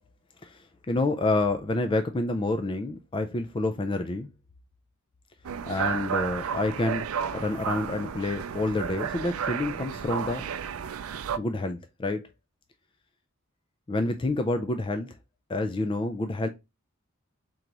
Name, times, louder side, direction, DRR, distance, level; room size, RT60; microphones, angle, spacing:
voice 1, 0.4-4.3 5.7-10.5 11.4-12.3 13.9-15.1 15.5-16.5, left 2 dB, 25° left, 0.3 m, -28 dB
sound 1, 5.4-11.4, right 7 dB, 90° right, 0.4 m, -32 dB
3.8 x 2.9 x 4.6 m
head